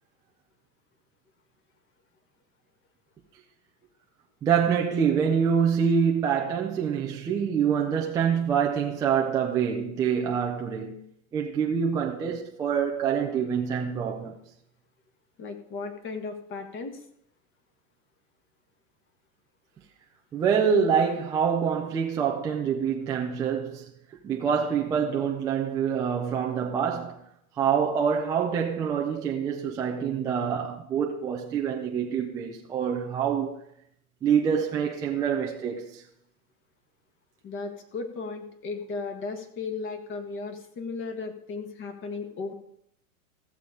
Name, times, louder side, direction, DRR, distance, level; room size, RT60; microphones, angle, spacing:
voice 1, 4.4-11.0 11.3-14.4 20.3-23.9 24.2-27.2 27.6-33.6 34.2-36.0, right 7 dB, 10° right, 0.3 m, -26 dB
voice 2, 15.4-16.9 37.4-42.5, left 4 dB, 30° left, 1.5 m, -35 dB
15.0 x 7.0 x 4.9 m
hypercardioid pair, 120°, 43 cm